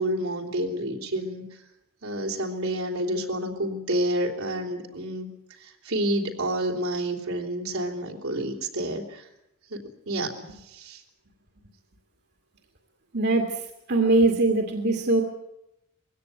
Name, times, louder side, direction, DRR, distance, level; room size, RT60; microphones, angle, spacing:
voice 1, 0.0-1.4 2.0-5.3 5.6-9.2 9.7-11.0, right 1 dB, 75° right, 2 dB, 3.5 m, -29 dB
voice 2, 13.1-13.6 13.9-15.2, right 2 dB, 50° right, 3 dB, 2.2 m, -21 dB
21.5 x 16.5 x 9.5 m, 0.87 s
head